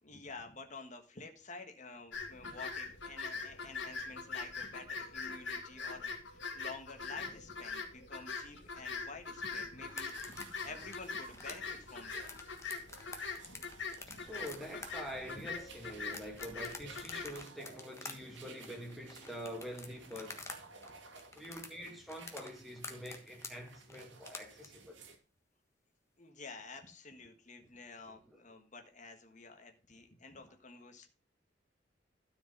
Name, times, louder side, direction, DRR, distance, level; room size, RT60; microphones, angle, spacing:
voice 1, 0.0-12.3 14.0-14.3 15.4-15.5 18.2-18.3 26.2-31.1, left 3 dB, 40° left, 1.5 m, -50 dB
sound 1, 2.1-17.3, left 4 dB, 75° left, 2.4 m, -43 dB
sound 2, 9.9-20.6 20.8-24.7, left 3 dB, 15° left, 1.3 m, -48 dB
sound 3, 10.1-25.2, right 4 dB, 80° right, 2.1 m, -57 dB
voice 2, 14.2-20.5 21.3-25.0 28.2-28.4, equal, ahead, 2.4 m, -46 dB
13.0 x 5.1 x 5.4 m
head